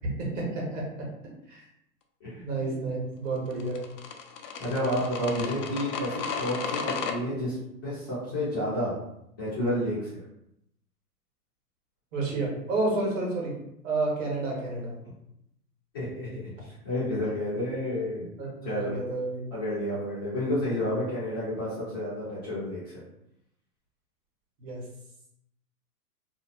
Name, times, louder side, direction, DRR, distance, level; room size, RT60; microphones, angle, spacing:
voice 1, 0.3-0.8 1.5-1.6 2.4-3.8 12.1-13.5 13.8-15.0 18.4-19.4 24.6-24.8, right 3 dB, 50° right, -3 dB, 1.2 m, -30 dB
voice 2, 2.2-2.7 4.6-9.0 9.4-10.1 15.9-18.3 18.6-18.9 19.5-23.0, left 1 dB, 15° left, -13 dB, 0.4 m, -30 dB
sound 1, 3.5-7.1, left 6 dB, 75° left, 0.6 m, -34 dB
2.6 x 2.1 x 2.4 m, 0.78 s
hypercardioid pair, 135°, 48 cm